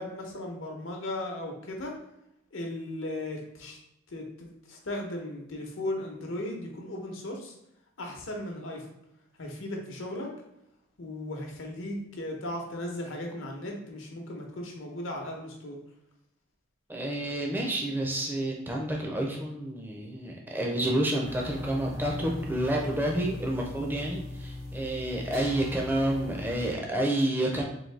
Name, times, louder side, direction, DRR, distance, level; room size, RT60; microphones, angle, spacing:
voice 1, 0.0-2.0 2.5-3.8 4.1-7.5 8.0-8.9 9.4-10.3 11.0-15.8, left 1 dB, 75° left, 1 dB, 0.9 m, -36 dB
voice 2, 16.9-27.6, right 1 dB, 10° right, -1 dB, 0.5 m, -29 dB
sound 1, 21.2-26.7, left 2 dB, 75° right, 1.1 m, -39 dB
3.9 x 2.7 x 3.3 m, 0.82 s
head